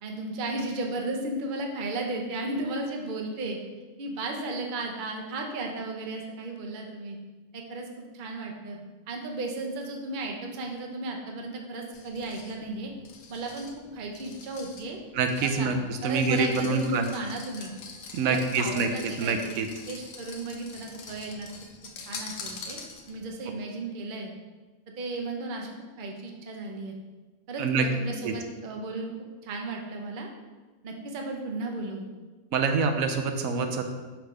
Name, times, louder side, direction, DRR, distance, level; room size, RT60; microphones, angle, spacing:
voice 1, 0.0-3.6 4.0-7.2 7.5-7.9 8.1-8.8 9.1-12.9 13.3-13.7 13.9-15.0 15.4-17.7 18.2-21.5 22.1-22.8 23.1-24.3 25.0-25.7 26.0-26.9 27.5-29.1 29.4-30.3 30.8-32.0, right 2 dB, 45° right, 1 dB, 0.8 m, -34 dB
sound 1, 11.9-23.3, left 4 dB, 85° left, 1.2 m, -45 dB
voice 2, 15.1-17.0 18.1-19.7 27.6-27.9 28.2-28.3 32.5-33.8, right 4 dB, 80° right, 6 dB, 1.1 m, -26 dB
6.1 x 3.4 x 4.8 m, 1.3 s
omnidirectional pair, 1.5 m